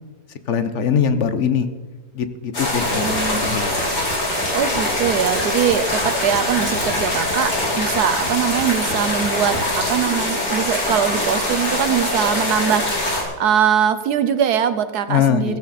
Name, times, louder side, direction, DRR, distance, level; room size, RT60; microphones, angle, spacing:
voice 1, 0.5-1.7 2.1-3.1 3.3-3.8 15.1-15.6, left 7 dB, 50° left, 10 dB, 1.2 m, -21 dB
sound 1, 2.5-13.2, left 1 dB, 85° left, 4.3 m, -23 dB
voice 2, 2.9-3.6 4.5-15.6, right 8 dB, 75° right, 11 dB, 1.5 m, -22 dB
16.0 x 15.5 x 4.2 m, 1.3 s
omnidirectional pair, 1.7 m